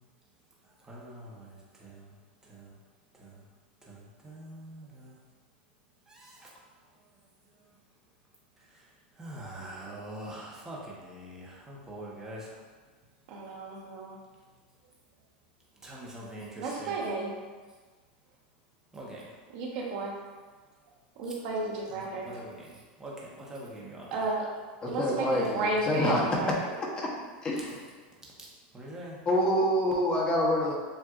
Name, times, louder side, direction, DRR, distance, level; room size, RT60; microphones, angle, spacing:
voice 1, 0.9-1.5 1.8-1.9 2.5-2.6 3.9-4.0 4.2-5.1 6.1-6.3 9.2-12.5 15.8-17.0 18.9-19.2 21.9-22.7 23.0-23.1 23.4-24.2 28.7-29.2, right 1 dB, 10° right, -5 dB, 1.0 m, -43 dB
voice 2, 13.3-14.2 16.6-17.3 19.5-20.1 21.2-22.3 24.1-24.5 24.8-26.5, right 2 dB, 55° right, -2 dB, 1.1 m, -32 dB
voice 3, 24.8-27.1 27.4-27.8 29.3-30.7, left 1 dB, 20° left, -3 dB, 0.9 m, -27 dB
7.4 x 2.5 x 2.4 m, 1.4 s
supercardioid pair, 145°, 5 cm